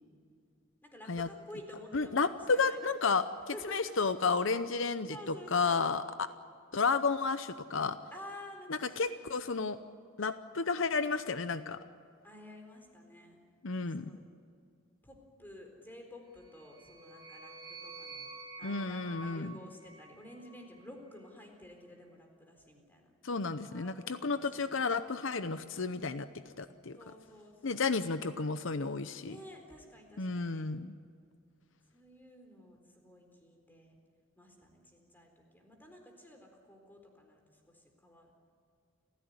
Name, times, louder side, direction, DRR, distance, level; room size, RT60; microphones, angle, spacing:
voice 1, 0.8-2.8 3.5-3.9 5.1-5.9 8.1-9.2 12.2-13.4 13.9-14.2 15.0-18.3 18.6-23.1 23.7-24.9 27.0-28.0 29.2-30.7 31.9-33.9 34.4-38.3, left 1 dB, 10° left, 3 dB, 4.0 m, -52 dB
voice 2, 1.9-6.3 6.7-8.0 8.7-9.8 10.2-11.8 13.6-14.2 18.6-19.5 23.2-27.0 27.6-29.4 30.2-30.9, left 4 dB, 70° left, 11 dB, 0.8 m, -32 dB
sound 1, 16.4-20.8, right 1 dB, 20° right, 4.9 m, -49 dB
29.0 x 15.5 x 9.6 m, 2.3 s
head